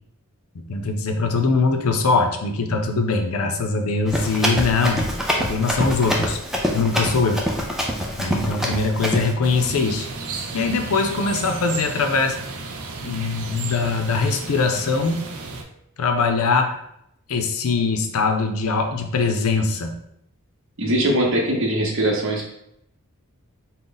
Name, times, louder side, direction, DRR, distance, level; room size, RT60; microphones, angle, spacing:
voice 1, 0.6-5.1 5.4-6.4 6.7-7.4 8.2-10.1 10.5-12.4 13.0-15.3 16.0-16.8 17.3-19.9, left 4 dB, 70° left, 6 dB, 0.5 m, -22 dB
Run, 4.1-9.3, equal, ahead, 0.4 m, -25 dB
sound 1, 9.4-15.6, right 3 dB, 75° right, 0.5 m, -33 dB
voice 2, 20.8-22.5, right 1 dB, 60° right, 0 dB, 0.9 m, -21 dB
3.8 x 2.1 x 3.8 m, 0.77 s
head